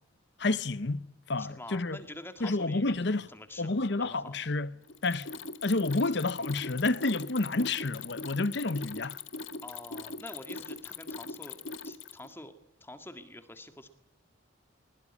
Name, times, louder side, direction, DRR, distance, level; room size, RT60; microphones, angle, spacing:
voice 1, 0.4-2.0 2.4-3.3 3.6-4.7 5.0-5.3 5.6-9.2, left 2 dB, 60° left, 0.9 m, -29 dB
voice 2, 1.4-4.4 9.6-12.5 12.8-13.9, left 1 dB, 10° left, 1.9 m, -47 dB
Mechanisms, 4.9-12.3, left 4 dB, 85° left, 1.7 m, -41 dB
21.5 x 21.0 x 9.6 m
head